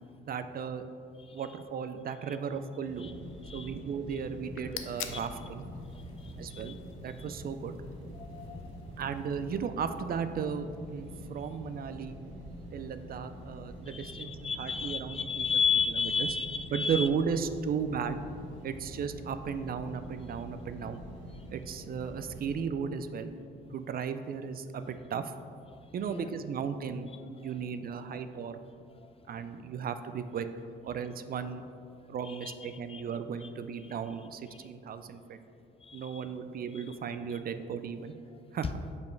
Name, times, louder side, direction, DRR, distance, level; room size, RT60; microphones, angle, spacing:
voice 1, 0.2-0.8 1.3-3.1 3.5-5.6 6.4-6.8 7.0-7.8 9.0-12.2 12.7-15.4 16.2-16.3 16.7-18.2 18.6-21.0 21.5-23.3 23.7-25.3 25.9-28.6 29.3-30.5 30.8-31.6 32.1-35.4 35.9-38.1 38.5-38.8, right 6 dB, 50° right, 10 dB, 0.4 m, -35 dB
sound 1, 2.8-22.5, right 1 dB, 90° right, 1.4 m, -46 dB
voice 2, 3.4-3.8 5.1-5.3 5.7-6.8 7.2-7.3 8.1-9.0 13.9-17.1 26.0-26.3 27.4-27.5 28.1-28.2 29.0-29.1 32.2-33.0 33.4-33.5 33.8-33.9 34.5-34.7 35.8-36.2 36.7-37.0 37.3-37.4, left 5 dB, 30° left, 9 dB, 0.3 m, -34 dB
sound 2, 4.3-9.5, left 10 dB, 90° left, 0.5 m, -47 dB
5.3 x 5.2 x 4.6 m, 2.4 s
cardioid pair, 90°, 20 cm